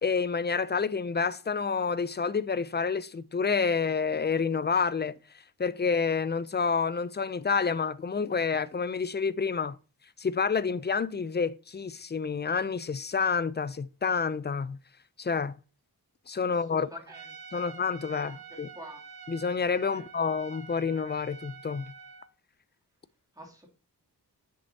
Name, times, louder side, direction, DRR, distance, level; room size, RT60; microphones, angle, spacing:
voice 1, 0.0-5.1 5.6-9.8 10.2-14.8 15.2-15.5 16.3-16.9 17.5-18.7 19.3-21.8, left 5 dB, 25° left, 0.4 m, -28 dB
voice 2, 16.4-17.7 18.1-19.0 19.9-20.1 23.3-23.7, right 1 dB, 10° right, 2.8 m, -49 dB
Trumpet, 17.1-22.3, right 6 dB, 65° right, 1.0 m, -47 dB
7.9 x 6.5 x 2.8 m
wide cardioid pair, 105°, 39 cm